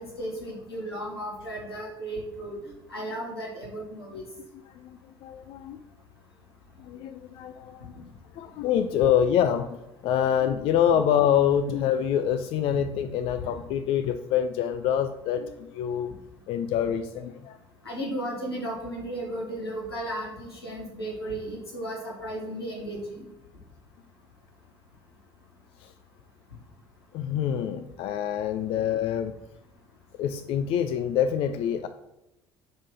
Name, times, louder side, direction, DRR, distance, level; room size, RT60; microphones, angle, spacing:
voice 1, 0.0-2.6 2.9-4.2 17.8-23.2, right 1 dB, 85° left, -3 dB, 1.6 m, -35 dB
voice 2, 4.8-5.8 6.8-8.1 8.4-16.1 16.5-17.6 25.8-25.9 27.1-29.3 30.2-31.9, left 9 dB, 45° left, 10 dB, 0.4 m, -26 dB
5.1 x 3.7 x 5.5 m, 0.91 s
figure-of-eight pair, 60°, 13 cm